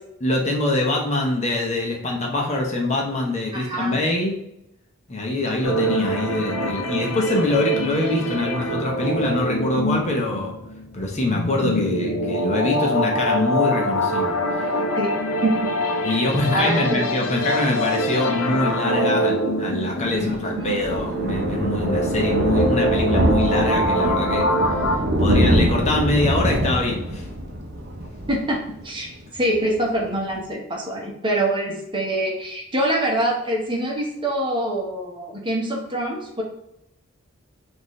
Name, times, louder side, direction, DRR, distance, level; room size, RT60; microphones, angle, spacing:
voice 1, 0.2-4.4 5.1-10.5 10.9-14.8 16.0-24.5 25.2-27.3, left 2 dB, 30° left, 0 dB, 0.8 m, -24 dB
voice 2, 3.5-4.0 7.3-7.5 14.9-15.1 15.4-15.7 16.1-16.2 16.5-17.2 20.2-20.8 28.3-36.4, right 1 dB, 25° right, -1 dB, 1.0 m, -25 dB
sound 1, 5.6-25.0, equal, 75° left, 0.6 m, -24 dB
Thunder, 19.8-29.2 29.5-29.7 30.0-30.1 30.3-30.4, equal, 50° right, 0.7 m, -24 dB
5.9 x 2.7 x 3.1 m, 0.81 s
head